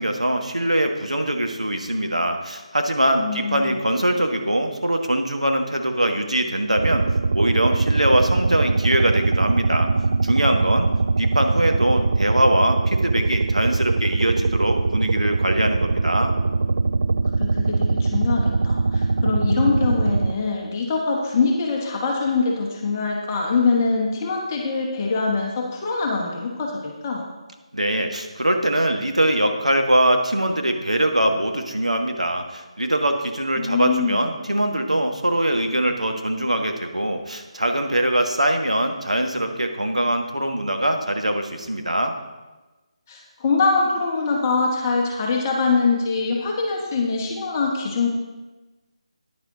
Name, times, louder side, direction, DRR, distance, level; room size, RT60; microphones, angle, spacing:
voice 1, 0.0-9.9 10.2-10.9 11.2-16.3 27.7-42.1, right 1 dB, 90° right, 4 dB, 1.3 m, -22 dB
voice 2, 3.2-3.8 17.4-27.2 33.6-34.2 43.1-48.1, left 4 dB, 25° left, -1 dB, 1.3 m, -23 dB
sound 1, 6.8-20.3, right 3 dB, 65° right, 0.4 m, -21 dB
9.9 x 9.7 x 3.8 m, 1.2 s
figure-of-eight pair, 150°, 3 cm